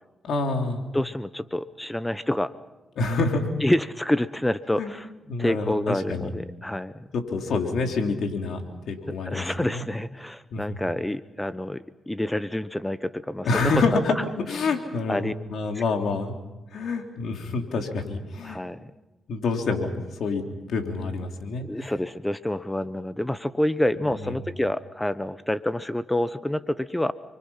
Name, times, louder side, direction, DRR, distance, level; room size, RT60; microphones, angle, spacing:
voice 1, 0.2-0.8 3.0-3.5 4.8-4.9 5.3-6.3 7.1-8.6 8.9-9.8 10.5-10.8 13.4-16.3 16.7-18.6 19.3-19.9 20.2-20.4 20.7-21.9 24.2-24.3, left 3 dB, 70° left, 3 dB, 3.5 m, -27 dB
voice 2, 0.9-2.5 3.6-5.1 5.4-7.1 9.3-14.0 15.1-15.3 15.7-15.8 18.4-18.9 21.6-27.1, left 1 dB, 10° left, 14 dB, 0.9 m, -27 dB
29.5 x 23.5 x 5.8 m, 1.1 s
supercardioid pair, 60°, 0 cm